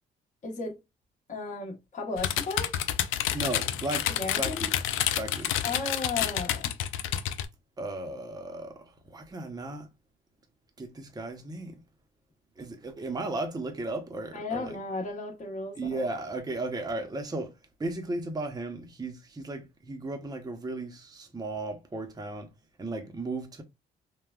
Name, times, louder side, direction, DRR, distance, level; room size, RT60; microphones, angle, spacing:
voice 1, 0.4-0.8 1.3-2.7 4.1-4.6 5.6-6.7 14.3-16.0, left 3 dB, 40° left, 0.9 m, -34 dB
sound 1, 2.2-7.5, left 11 dB, 85° left, 0.4 m, -29 dB
voice 2, 3.3-4.1 4.4-4.7 5.1-5.5 7.8-9.9 10.8-11.7 12.6-14.8 15.8-22.5 22.8-23.6, right 2 dB, 20° right, 0.7 m, -35 dB
3.4 x 2.1 x 2.2 m
cardioid pair, 90°, 20 cm